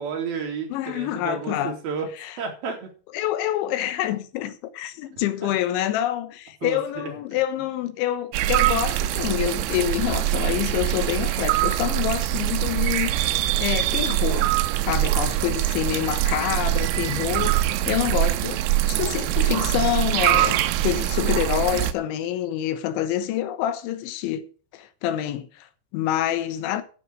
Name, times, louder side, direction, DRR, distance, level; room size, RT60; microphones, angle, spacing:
voice 1, 0.0-2.1 2.4-2.9 5.4-5.5 6.6-7.1, right 6 dB, 55° right, 4.4 m, -31 dB
voice 2, 0.7-1.8 2.2-2.4 3.1-14.5 14.8-24.5 24.7-26.8, left 12 dB, 80° left, 3.4 m, -27 dB
sound 1, 8.3-21.9, right 14 dB, 80° right, 2.9 m, -23 dB
11.5 x 7.4 x 6.1 m
omnidirectional pair, 5.4 m